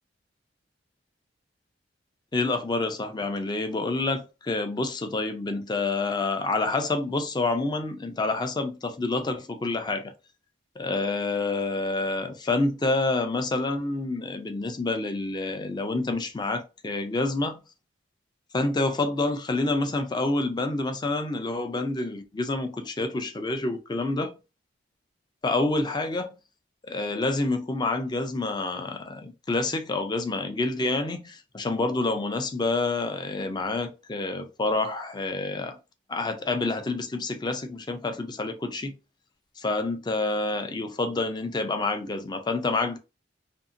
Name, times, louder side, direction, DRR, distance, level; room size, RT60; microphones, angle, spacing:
voice 1, 2.3-10.1 10.8-17.6 18.5-24.3 25.4-26.3 26.8-35.8 36.1-38.9 39.6-43.0, left 2 dB, 25° left, 0.4 m, -28 dB
2.7 x 2.6 x 2.5 m
head